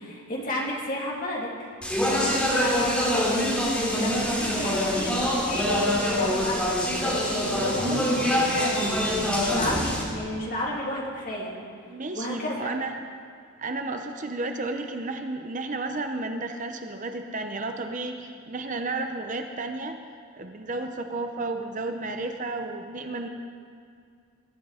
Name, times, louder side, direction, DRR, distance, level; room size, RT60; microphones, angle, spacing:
voice 1, 0.0-1.5 2.0-11.6 12.1-12.7, left 1 dB, 40° left, -3 dB, 2.9 m, -33 dB
Speech, 1.8-10.0, left 1 dB, 5° left, 2.7 m, -25 dB
voice 2, 11.9-13.0 13.6-20.0 20.4-23.3, right 2 dB, 35° right, 6 dB, 0.8 m, -32 dB
22.0 x 11.0 x 5.0 m, 2.2 s
head